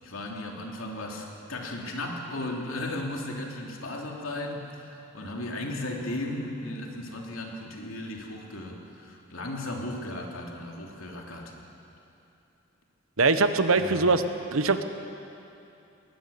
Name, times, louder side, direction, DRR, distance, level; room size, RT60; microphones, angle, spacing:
voice 1, 0.0-11.5 13.8-14.1, left 1 dB, 75° left, 0 dB, 3.0 m, -36 dB
voice 2, 13.2-14.2 14.5-14.8, right 3 dB, 80° right, 9 dB, 1.1 m, -22 dB
20.5 x 19.5 x 7.0 m, 2.8 s
head